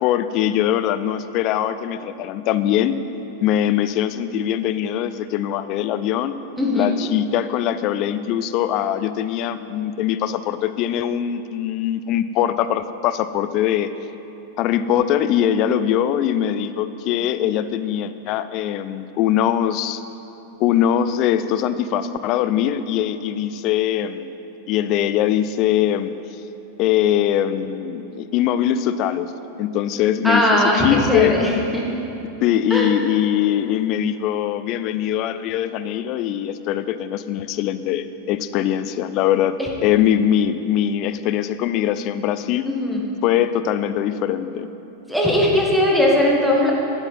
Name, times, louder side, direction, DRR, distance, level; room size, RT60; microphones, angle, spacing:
voice 1, 0.0-3.0 3.4-6.4 6.7-13.9 14.6-20.0 20.6-24.3 24.7-26.1 26.8-29.3 29.6-31.4 32.4-42.7 43.2-44.7, left 10 dB, 40° left, 12 dB, 0.4 m, -22 dB
voice 2, 6.6-6.9 30.2-31.8 32.7-32.9 39.6-39.7 42.7-43.0 45.1-46.7, left 1 dB, ahead, -3 dB, 1.5 m, -19 dB
12.0 x 7.8 x 4.5 m, 3.0 s
figure-of-eight pair, 90°, 0 cm